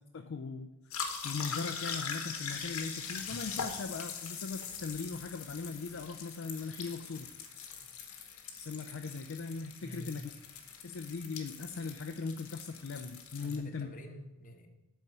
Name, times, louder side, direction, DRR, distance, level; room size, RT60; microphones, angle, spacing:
voice 1, 0.1-1.0 1.2-7.3 8.6-10.2 10.8-13.9, left 4 dB, 60° left, 5 dB, 0.4 m, -39 dB
sound 1, 0.9-13.6, left 6 dB, 85° left, 1.2 m, -42 dB
voice 2, 9.8-10.2 13.4-14.7, equal, 40° left, 5 dB, 0.9 m, -47 dB
8.2 x 4.4 x 6.6 m, 1.0 s
head